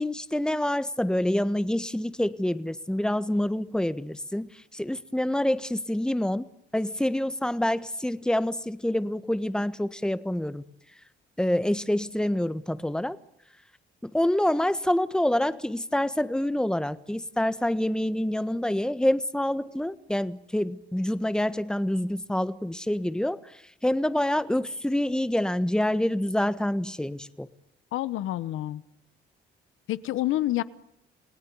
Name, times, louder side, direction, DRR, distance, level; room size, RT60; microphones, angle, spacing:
voice 1, 0.0-6.5 6.7-10.6 11.4-13.2 14.0-23.4 23.8-27.5, left 1 dB, 5° left, 1.4 m, -27 dB
voice 2, 27.9-28.8 29.9-30.6, left 15 dB, 85° left, 1.2 m, -28 dB
29.5 x 19.0 x 9.7 m
cardioid pair, 90°, 20 cm